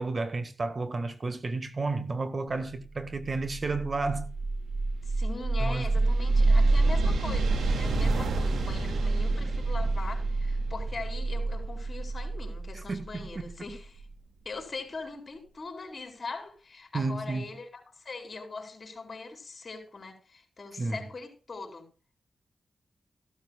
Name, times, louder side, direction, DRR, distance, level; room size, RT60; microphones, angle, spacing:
voice 1, 0.0-4.3 5.6-5.9 12.7-13.3 16.9-17.5 20.8-21.0, right 3 dB, 45° right, 1.7 m, -32 dB
sound 1, 3.2-14.0, right 3 dB, 90° right, 2.3 m, -27 dB
voice 2, 5.0-14.1 14.4-21.9, left 3 dB, 50° left, 4.4 m, -41 dB
15.0 x 12.5 x 2.4 m
cardioid pair, 55°, 0 cm